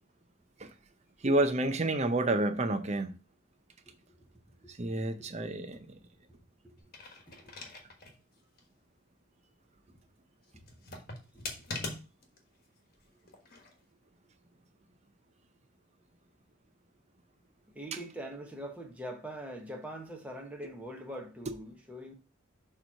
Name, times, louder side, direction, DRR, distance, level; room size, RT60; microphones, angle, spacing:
voice 1, 1.2-3.2 4.7-6.0, right 2 dB, 30° right, 0.6 m, -29 dB
voice 2, 4.6-5.0 6.6-6.7 7.3-7.5 11.3-11.4 13.1-13.2 17.7-22.1, right 1 dB, 5° right, 1.1 m, -43 dB
sound 1, 6.8-8.2 8.6-8.7 10.6-12.4 13.3-13.7, left 3 dB, 45° left, 1.3 m, -42 dB
6.7 x 3.1 x 5.6 m
head